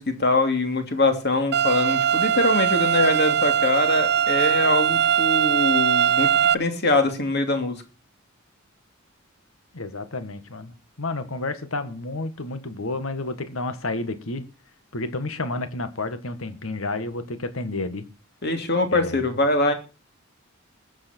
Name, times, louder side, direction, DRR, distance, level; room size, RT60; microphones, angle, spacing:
voice 1, 0.0-7.8 18.4-19.7, left 2 dB, 55° left, 6 dB, 2.9 m, -23 dB
sound 1, 1.5-6.5, right 9 dB, 55° right, 0.6 m, -21 dB
voice 2, 9.7-14.4 14.9-18.0 18.9-19.2, left 2 dB, 90° left, 11 dB, 1.6 m, -30 dB
20.5 x 7.8 x 4.5 m, 0.32 s
head